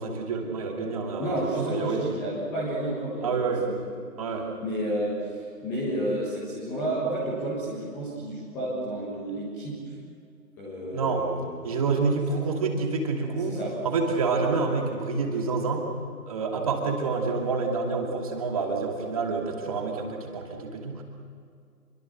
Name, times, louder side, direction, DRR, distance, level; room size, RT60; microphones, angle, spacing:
voice 1, 0.0-2.0 3.2-3.6 4.2-4.5 10.9-11.2 11.6-13.6 13.8-15.9 16.3-21.0, right 4 dB, 20° right, 1 dB, 2.6 m, -28 dB
voice 2, 1.2-3.4 3.6-3.8 4.6-9.9 10.6-11.5 12.3-12.4 13.4-13.8, right 1 dB, 5° left, -7 dB, 1.5 m, -31 dB
26.5 x 23.5 x 6.6 m, 2.3 s
figure-of-eight pair, 155°, 48 cm